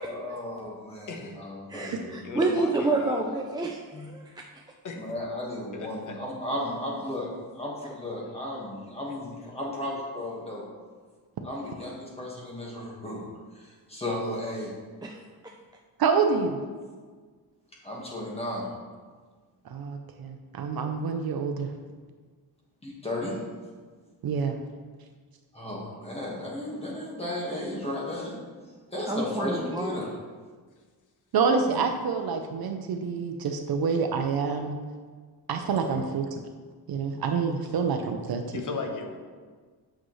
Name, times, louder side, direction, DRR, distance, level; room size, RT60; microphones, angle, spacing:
voice 1, 0.0-2.3 3.9-4.1 4.9-7.3 7.5-10.6 11.4-13.3 13.5-14.7 16.3-16.4 17.8-18.7 22.8-23.4 25.5-28.4 28.9-30.1 31.7-31.8 35.8-36.0, left 1 dB, 15° left, -4 dB, 1.5 m, -34 dB
voice 2, 1.1-1.4 2.2-3.2 4.8-5.0 5.8-6.1 38.5-39.1, left 4 dB, 50° left, 3 dB, 0.9 m, -36 dB
voice 3, 1.7-4.4 15.0-15.2 29.1-30.0, right 2 dB, 10° right, -1 dB, 0.3 m, -29 dB
voice 4, 16.0-16.6 19.7-21.7 24.2-24.5 31.3-34.8 35.5-36.2 36.9-38.4, right 5 dB, 65° right, 5 dB, 0.6 m, -27 dB
8.6 x 6.2 x 3.1 m, 1.5 s
wide cardioid pair, 175°, 40 cm